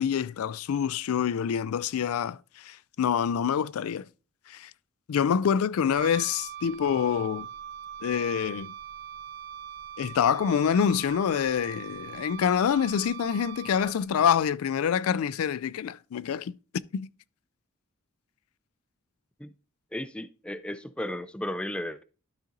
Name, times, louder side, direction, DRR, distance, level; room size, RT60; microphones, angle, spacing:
voice 1, 0.0-4.0 4.5-4.7 5.1-7.5 8.0-8.7 10.0-16.5 16.9-17.1, left 8 dB, 80° left, 0.4 m, -26 dB
Wind instrument woodwind instrument, 5.9-14.2, right 9 dB, 55° right, 1.0 m, -41 dB
voice 2, 19.9-22.0, left 1 dB, 5° left, 0.3 m, -34 dB
12.0 x 4.1 x 3.9 m
head